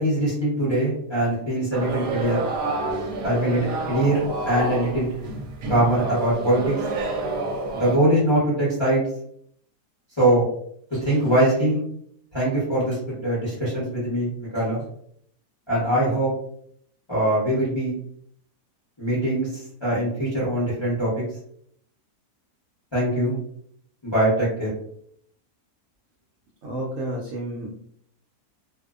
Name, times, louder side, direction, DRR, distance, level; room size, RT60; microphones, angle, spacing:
voice 1, 0.0-2.4 3.2-5.1 5.7-6.8 7.7-9.0 10.2-10.5 10.9-11.8 12.3-14.8 15.7-16.3 17.1-17.9 19.0-21.1 22.9-23.3 24.0-24.7, right 1 dB, 25° left, -8 dB, 0.6 m, -22 dB
sound 1, 1.7-8.0, right 2 dB, 80° right, 1.1 m, -28 dB
voice 2, 26.6-27.7, right 1 dB, 65° right, -4 dB, 0.8 m, -30 dB
2.6 x 2.0 x 2.3 m, 0.67 s
omnidirectional pair, 1.7 m